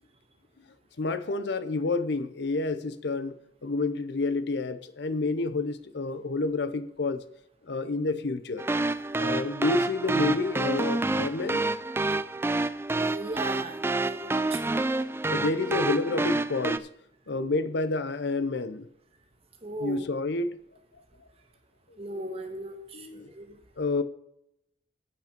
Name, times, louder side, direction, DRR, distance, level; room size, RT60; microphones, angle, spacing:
voice 1, 1.0-3.4 3.6-7.2 7.7-8.6 9.2-11.6 15.3-16.9 17.3-18.9 19.8-20.5 22.1-22.3 22.9-23.3 23.8-24.0, left 3 dB, 65° left, 0.7 m, -29 dB
sound 1, 8.6-16.8, right 2 dB, 15° right, 0.3 m, -28 dB
voice 2, 12.9-14.6 19.6-20.1 22.0-23.6, right 2 dB, 35° right, 1.6 m, -37 dB
10.5 x 8.4 x 4.5 m
head